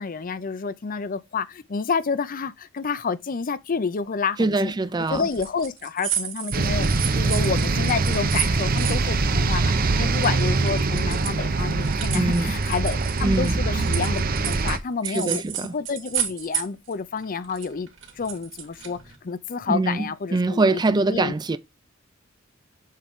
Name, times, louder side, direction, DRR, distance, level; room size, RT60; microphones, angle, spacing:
voice 1, 0.0-4.7 5.1-15.4 15.7-17.9 18.2-21.3, left 5 dB, 45° left, 0.5 m, -29 dB
voice 2, 4.4-5.3 12.1-12.6 13.2-13.6 15.0-15.7 19.7-21.6, right 2 dB, 20° right, 0.4 m, -23 dB
sound 1, 5.1-9.9 10.1-14.8 15.0-16.9 17.2-19.2, right 10 dB, 65° right, 2.2 m, -32 dB
sound 2, 6.5-14.8, right 3 dB, 45° right, 0.8 m, -23 dB
7.5 x 4.4 x 3.6 m
head